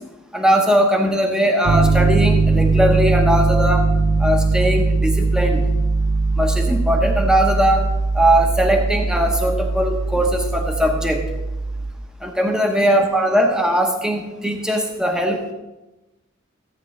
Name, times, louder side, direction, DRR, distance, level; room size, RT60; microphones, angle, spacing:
voice 1, 0.3-3.8 4.2-5.7 6.4-7.9 8.1-11.2 12.2-15.4, equal, 5° right, 2 dB, 1.0 m, -19 dB
Piano, 1.7-11.9, right 3 dB, 70° right, 0.9 m, -20 dB
15.0 x 9.1 x 3.3 m, 1.0 s
head